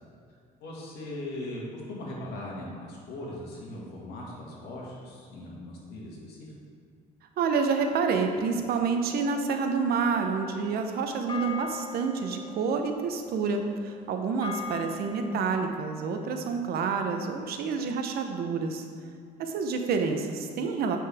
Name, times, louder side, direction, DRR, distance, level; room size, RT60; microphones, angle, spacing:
voice 1, 0.6-6.5, left 1 dB, 80° left, -4 dB, 2.0 m, -39 dB
voice 2, 7.4-18.9 19.4-21.0, right 5 dB, 65° right, 5 dB, 0.8 m, -28 dB
sound 1, 9.1-15.8, left 5 dB, 30° left, 0.7 m, -42 dB
7.9 x 6.1 x 3.5 m, 2.2 s
cardioid pair, 110°, 17 cm